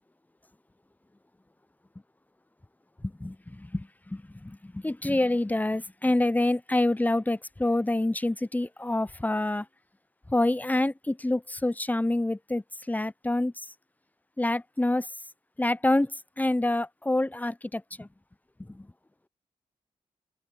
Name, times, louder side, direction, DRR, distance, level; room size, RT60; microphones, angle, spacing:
voice 1, 3.0-9.7 10.3-13.5 14.4-15.1 15.6-18.1 18.6-18.9, left 1 dB, 10° left, 0.7 m, -27 dB
open air
supercardioid pair, 40°, 14 cm